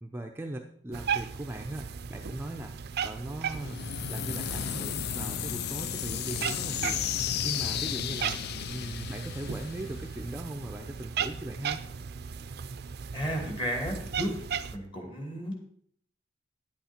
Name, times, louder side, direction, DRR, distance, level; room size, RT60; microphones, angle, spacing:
voice 1, 0.0-3.8 4.1-8.3 8.7-11.8, right 1 dB, 15° right, 3 dB, 0.6 m, -39 dB
Cat, 0.9-14.8, right 7 dB, 60° right, 0.5 m, -37 dB
sound 1, 3.5-10.4, left 10 dB, 60° left, 0.4 m, -34 dB
voice 2, 13.1-14.3 14.7-15.6, equal, 30° left, 2 dB, 2.5 m, -33 dB
10.0 x 8.3 x 4.4 m, 0.62 s
head